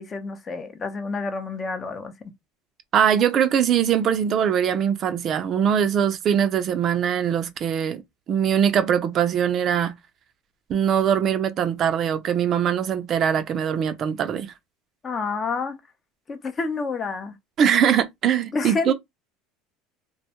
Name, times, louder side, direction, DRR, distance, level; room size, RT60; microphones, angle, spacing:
voice 1, 0.0-2.1 15.0-15.8 16.3-17.3 18.5-18.9, left 4 dB, 30° left, 0.6 m, -29 dB
voice 2, 2.9-8.0 8.3-9.9 10.7-14.5 17.6-18.9, right 8 dB, 45° right, 0.4 m, -22 dB
2.2 x 2.1 x 2.8 m
supercardioid pair, 100°, 0 cm